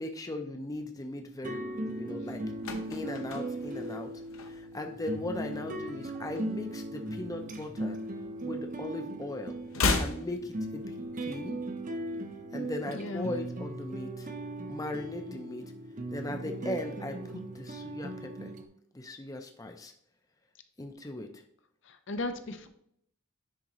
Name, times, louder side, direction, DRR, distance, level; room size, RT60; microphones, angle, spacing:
voice 1, 0.0-2.4 2.9-4.1 4.4-8.0 8.4-9.6 10.0-11.6 12.5-14.3 14.7-15.6 16.1-17.1 17.5-18.5 18.9-19.9 20.8-21.4, left 2 dB, 15° left, 5 dB, 0.5 m, -38 dB
sound 1, 1.4-18.7, right 1 dB, 40° right, 0.6 m, -38 dB
sound 2, 2.4-4.9 5.2-5.5 5.8-7.2 7.5-8.9 9.1-11.2 11.5-11.6, left 3 dB, 80° left, 0.9 m, -35 dB
voice 2, 12.9-13.3 21.8-22.7, left 2 dB, 60° left, 8 dB, 0.6 m, -36 dB
10.0 x 3.7 x 2.9 m, 0.69 s
head